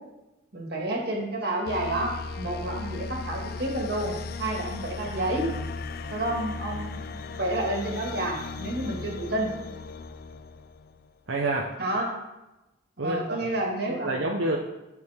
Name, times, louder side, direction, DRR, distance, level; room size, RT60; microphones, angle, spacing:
voice 1, 0.5-5.5 6.1-9.5 11.8-12.2 13.0-14.2, right 1 dB, 55° right, 0 dB, 1.9 m, -30 dB
sound 1, 1.7-11.1, left 4 dB, 50° left, 0.4 m, -37 dB
voice 2, 11.3-11.7 13.0-13.5 13.9-14.6, right 2 dB, 80° right, 0 dB, 0.8 m, -28 dB
13.0 x 4.9 x 3.6 m, 0.99 s
head